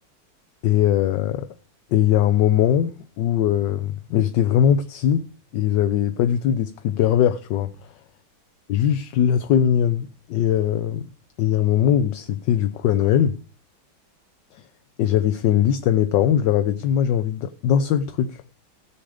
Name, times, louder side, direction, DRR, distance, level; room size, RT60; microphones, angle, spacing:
voice 1, 0.6-1.5 1.9-5.3 5.5-7.7 8.7-11.1 11.4-13.4 15.0-18.4, left 10 dB, 70° left, 1.3 m, -20 dB
16.0 x 7.5 x 5.0 m
omnidirectional pair, 2.1 m